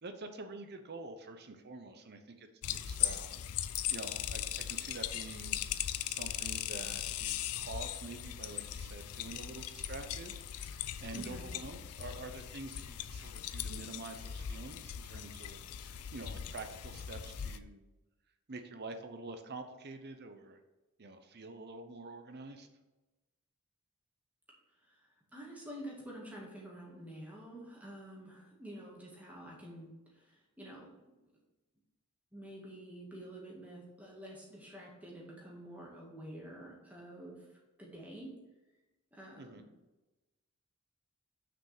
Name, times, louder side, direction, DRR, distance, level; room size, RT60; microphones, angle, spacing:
voice 1, 0.0-3.4 3.9-5.6 6.0-17.9 18.5-20.6 21.0-22.7 39.4-39.6, right 2 dB, 50° right, 7 dB, 0.8 m, -47 dB
sound 1, 2.6-17.6, left 11 dB, 85° left, 0.4 m, -39 dB
voice 2, 11.1-11.5 24.9-25.0 25.3-30.9 32.3-38.3 39.1-39.6, right 1 dB, 5° right, -3 dB, 2.0 m, -48 dB
6.3 x 5.2 x 6.6 m, 1.1 s
head